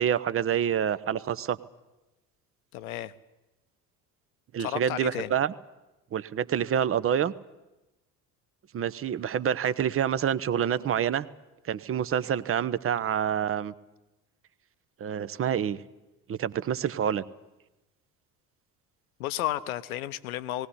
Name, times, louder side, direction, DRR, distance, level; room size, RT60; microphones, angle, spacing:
voice 1, 0.0-1.6 4.5-5.5 6.1-7.3 8.7-11.3 11.7-13.7 15.0-15.8 16.3-17.2, right 9 dB, 30° right, 16 dB, 0.9 m, -27 dB
voice 2, 2.7-3.1 4.6-5.3 19.2-20.7, left 14 dB, 65° left, 14 dB, 0.9 m, -32 dB
19.0 x 18.0 x 9.8 m, 1.0 s
figure-of-eight pair, 55°, 46 cm